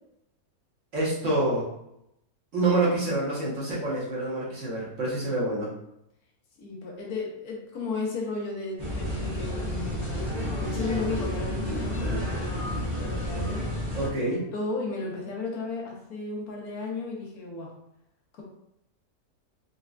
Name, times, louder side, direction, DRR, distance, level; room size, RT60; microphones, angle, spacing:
voice 1, 0.9-1.7 2.5-5.7 14.0-14.4, right 2 dB, 55° right, -6 dB, 1.2 m, -27 dB
voice 2, 6.6-13.7 14.5-17.7 18.3-18.4, left 3 dB, 70° left, -1 dB, 1.2 m, -34 dB
sound 1, 8.8-14.1, left 1 dB, 30° right, 0.8 m, -30 dB
4.0 x 2.1 x 2.4 m, 0.81 s
omnidirectional pair, 1.7 m